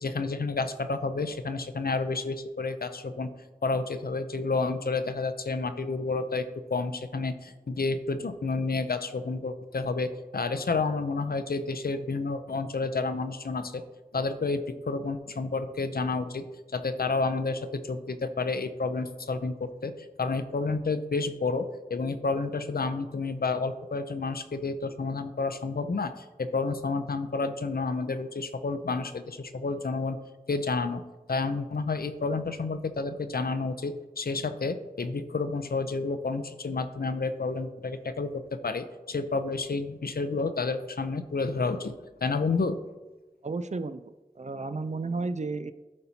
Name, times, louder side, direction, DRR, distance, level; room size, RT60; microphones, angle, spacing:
voice 1, 0.0-3.3 3.6-13.8 14.1-16.4 16.7-30.2 30.5-31.0 31.3-42.8, left 3 dB, 75° left, 10 dB, 0.5 m, -30 dB
voice 2, 43.4-45.7, right 3 dB, 50° right, 11 dB, 0.4 m, -33 dB
12.0 x 4.2 x 2.8 m, 1.2 s
wide cardioid pair, 40°, 16 cm